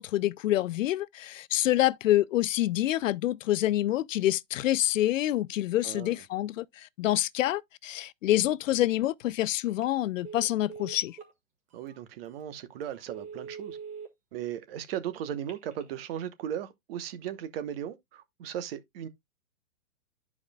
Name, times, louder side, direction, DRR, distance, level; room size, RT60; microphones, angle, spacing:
voice 1, 0.0-11.2, left 14 dB, 70° left, 0.5 m, -27 dB
voice 2, 5.8-6.2 11.7-13.8 14.3-19.1, right 10 dB, 45° right, 1.1 m, -37 dB
Telephone, 9.7-9.9 10.2-11.3 11.9-12.0 12.4-12.5 12.9-14.1 15.3-15.9, right 6 dB, 15° right, 1.6 m, -43 dB
11.5 x 4.9 x 2.3 m
hypercardioid pair, 145°, 41 cm